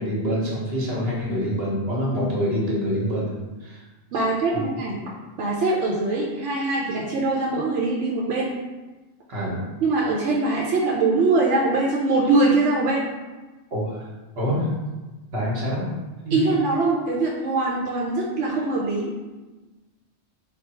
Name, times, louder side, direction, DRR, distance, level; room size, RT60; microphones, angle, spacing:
voice 1, 0.0-3.3 3.6-3.8 4.1-4.2 4.5-4.6 9.3-9.6 13.7-14.1 14.3-14.7 15.3-15.9 16.2-16.4, equal, 60° right, -4 dB, 1.3 m, -26 dB
voice 2, 4.1-5.0 5.4-8.5 9.8-13.0 16.3-19.1, right 3 dB, 85° right, -4 dB, 0.9 m, -22 dB
3.3 x 2.3 x 4.2 m, 1.2 s
omnidirectional pair, 1.2 m